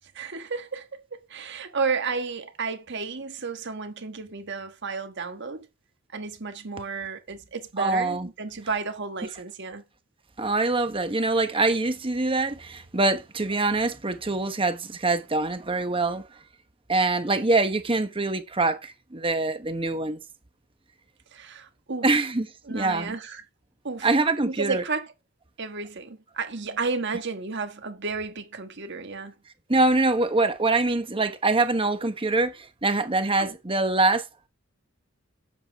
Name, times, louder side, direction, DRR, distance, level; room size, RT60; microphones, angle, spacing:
voice 1, 0.1-5.7 6.1-9.8 21.3-22.1 22.7-23.4 23.8-24.1 24.4-25.1 25.6-29.3 33.4-33.5, right 4 dB, 60° right, 1.5 m, -32 dB
voice 2, 7.8-8.3 10.4-16.2 16.9-20.2 22.0-23.1 24.0-24.8 29.7-34.5, right 3 dB, 25° right, 1.2 m, -24 dB
9.9 x 8.2 x 3.5 m
head